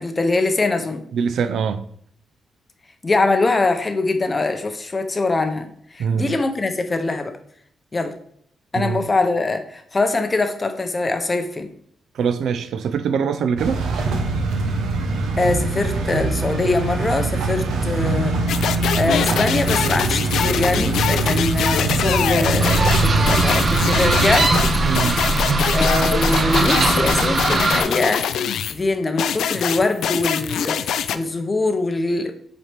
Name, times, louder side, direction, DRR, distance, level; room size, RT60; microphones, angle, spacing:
voice 1, 0.0-1.0 3.0-7.3 7.9-8.1 8.7-11.7 15.4-18.3 18.9-24.6 25.7-28.3 28.7-30.8 31.1-32.3, left 3 dB, 20° left, 0.6 m, -22 dB
voice 2, 1.1-1.8 6.0-6.3 8.7-9.0 12.1-13.8 24.8-25.2, right 6 dB, 65° right, 0.4 m, -23 dB
sound 1, 13.6-25.5, right 3 dB, 90° right, 0.9 m, -23 dB
sound 2, 18.5-28.8 29.2-31.2, left 8 dB, 75° left, 0.4 m, -24 dB
sound 3, 22.6-27.8, right 2 dB, 35° right, 0.9 m, -20 dB
7.4 x 4.1 x 3.3 m
cardioid pair, 155°, 0 cm